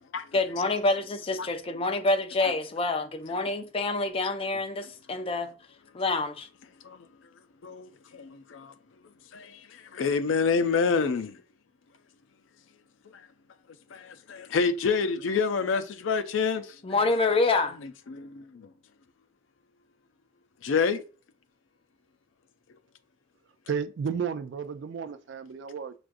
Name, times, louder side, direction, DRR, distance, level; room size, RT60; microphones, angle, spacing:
voice 1, 0.3-5.5 5.9-6.5 16.8-17.8, left 3 dB, 30° left, 0.4 m, -27 dB
voice 2, 7.6-8.7 9.3-11.4 13.9-16.8 17.8-18.7 20.6-21.0, left 5 dB, 85° left, 0.4 m, -28 dB
voice 3, 23.7-25.9, right 6 dB, 65° right, 0.4 m, -32 dB
6.0 x 2.3 x 2.5 m
head